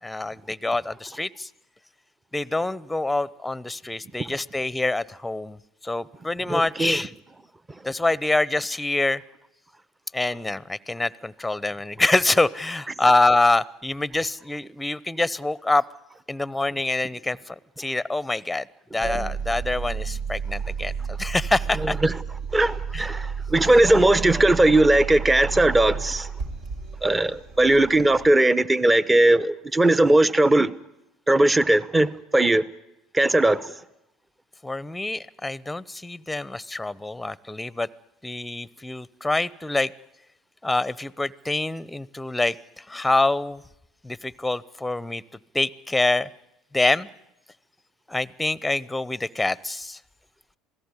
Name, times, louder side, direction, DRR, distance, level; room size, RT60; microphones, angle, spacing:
voice 1, 0.0-1.5 2.3-5.6 5.8-7.1 7.8-9.2 10.1-15.8 16.3-18.7 18.9-22.0 22.9-23.0 34.6-37.9 38.2-39.9 40.6-43.6 44.0-45.2 45.5-46.3 46.7-47.1 48.1-50.0, left 2 dB, 10° left, 0.8 m, -25 dB
voice 2, 6.5-7.0 21.8-22.1 22.5-26.3 27.0-30.7 31.3-32.6 33.1-33.7, right 1 dB, 15° right, 1.0 m, -19 dB
sound 1, 19.0-28.3, right 6 dB, 65° right, 3.6 m, -32 dB
27.0 x 17.5 x 9.8 m
hypercardioid pair, 65°, 0 cm